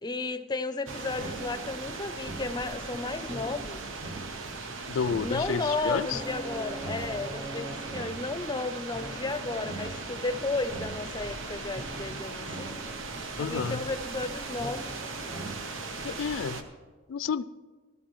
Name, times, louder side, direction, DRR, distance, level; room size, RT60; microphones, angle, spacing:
voice 1, 0.0-3.8 5.2-12.8 13.4-14.9, left 3 dB, 20° left, 10 dB, 0.6 m, -33 dB
sound 1, 0.9-16.3, right 2 dB, 20° right, 0.5 m, -43 dB
sound 2, 0.9-16.6, right 3 dB, 85° right, 1.0 m, -39 dB
voice 2, 4.9-6.2 13.4-13.8 16.0-16.6 17.1-17.4, left 6 dB, 85° left, 15 dB, 0.3 m, -30 dB
16.0 x 13.0 x 3.1 m, 1.4 s
head